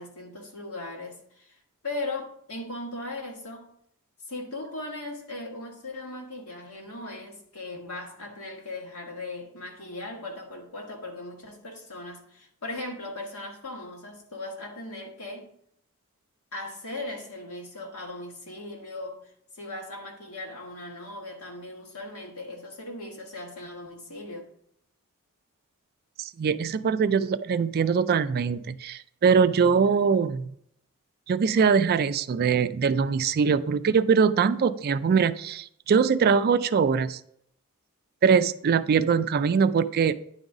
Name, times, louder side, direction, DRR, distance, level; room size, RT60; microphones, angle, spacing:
voice 1, 0.0-1.6 1.8-3.7 4.3-15.5 16.5-24.5, left 2 dB, 75° left, 1.7 m, -38 dB
voice 2, 26.2-30.5 31.3-37.2 38.2-40.1, right 6 dB, 45° right, 0.3 m, -22 dB
9.7 x 3.9 x 4.8 m
head